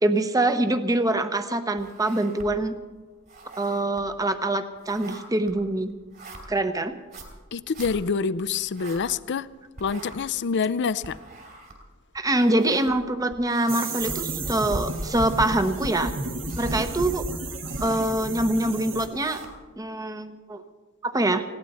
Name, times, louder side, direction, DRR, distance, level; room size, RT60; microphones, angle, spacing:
voice 1, 0.0-2.7 3.6-5.9 6.5-6.9 12.1-16.1 16.6-17.2 17.8-19.4 19.8-20.6 21.0-21.4, right 1 dB, 15° right, 9 dB, 0.9 m, -24 dB
sound 1, 1.8-2.8 3.1-9.5 9.7-16.0 16.3-17.1 17.5-18.2 18.8-19.8, right 2 dB, 50° right, 3.4 m, -44 dB
voice 2, 7.5-9.5 9.8-11.2, left 5 dB, 55° left, 17 dB, 0.5 m, -26 dB
sound 2, 13.7-19.1, right 2 dB, 65° right, 1.9 m, -32 dB
20.0 x 16.0 x 4.2 m, 1.3 s
head